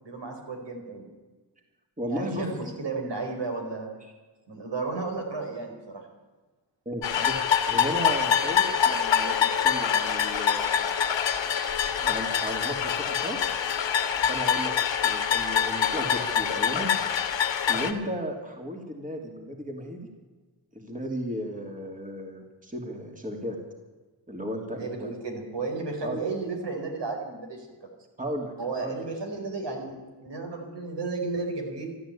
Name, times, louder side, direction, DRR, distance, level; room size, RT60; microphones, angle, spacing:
voice 1, 0.0-1.0 2.1-3.9 4.5-6.0 24.8-27.7 28.6-29.9 30.2-31.9, right 3 dB, 65° right, 2 dB, 4.6 m, -33 dB
voice 2, 2.0-2.5 4.0-4.1 6.8-7.4 7.7-10.9 11.9-13.5 14.2-14.7 15.0-16.9 17.7-20.0 20.7-23.6 24.3-25.1 26.0-26.2 28.2-28.5 28.8-29.0, equal, 15° right, 2 dB, 2.9 m, -35 dB
sound 1, 7.0-17.9, left 8 dB, 80° left, 1.5 m, -25 dB
14.0 x 12.0 x 8.6 m, 1.3 s
cardioid pair, 65°, 44 cm